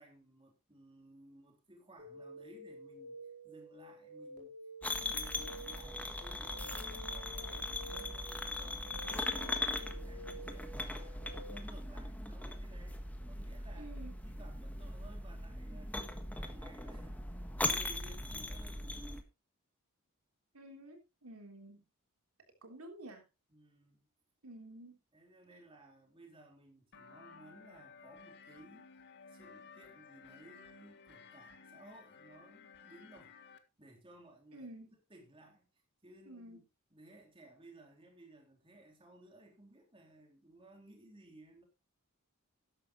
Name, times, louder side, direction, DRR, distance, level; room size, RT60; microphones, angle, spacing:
voice 1, 0.0-3.2 3.4-4.5 5.0-11.2 11.5-13.0 13.2-14.0 14.2-16.0 16.4-18.9 23.5-24.1 25.1-28.9 29.3-33.4 33.8-34.7 35.1-35.7 36.0-36.6 36.9-41.6, right 1 dB, 25° right, 3.5 m, -58 dB
sound 1, 2.0-11.5, right 1 dB, 50° right, 4.8 m, -51 dB
sound 2, 4.8-19.2, left 2 dB, 5° left, 1.5 m, -40 dB
voice 2, 13.8-14.1 20.5-21.8 22.6-23.2 24.4-25.0 34.5-34.9 36.3-36.6, right 1 dB, 80° right, 3.5 m, -50 dB
sound 3, 26.9-33.6, left 5 dB, 55° left, 1.6 m, -56 dB
13.5 x 11.5 x 3.1 m
head